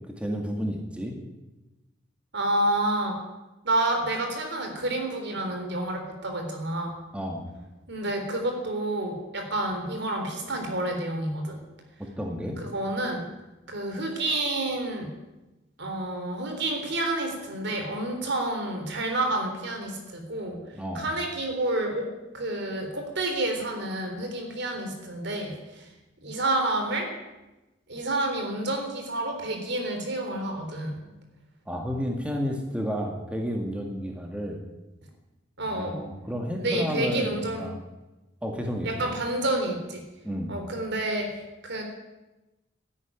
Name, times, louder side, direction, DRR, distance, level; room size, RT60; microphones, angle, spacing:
voice 1, 0.1-1.2 7.1-7.5 12.2-12.6 20.7-21.1 31.7-34.6 35.7-37.8 38.4-39.1 40.2-40.6, equal, 5° right, 1 dB, 2.0 m, -31 dB
voice 2, 2.3-3.2 3.6-6.9 7.9-11.6 12.6-13.3 13.7-15.1 15.8-20.6 20.9-22.1 22.3-25.9 26.2-27.1 27.9-31.0 35.6-36.0 36.6-37.7 38.8-40.0 40.5-41.8, right 1 dB, 65° right, 4 dB, 3.7 m, -29 dB
13.0 x 11.0 x 9.8 m, 1.0 s
head